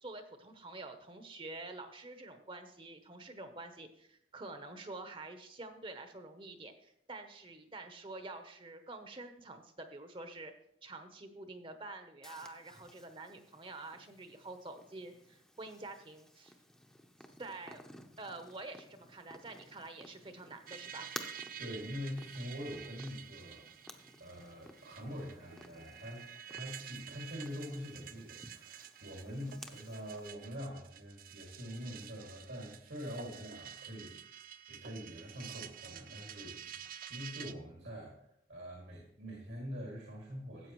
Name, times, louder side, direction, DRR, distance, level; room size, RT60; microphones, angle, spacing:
voice 1, 0.0-10.5 10.8-16.6 17.4-17.8 18.2-21.1, right 2 dB, 30° right, 7 dB, 0.8 m, -47 dB
Purr, 12.2-30.3, left 1 dB, 5° left, 0.6 m, -55 dB
sound 1, 20.7-37.5, right 9 dB, 50° right, 0.4 m, -50 dB
voice 2, 21.6-23.7 24.2-34.4 34.7-36.8 37.1-40.7, equal, 85° right, -2 dB, 2.3 m, -44 dB
13.5 x 8.1 x 3.1 m, 0.72 s
head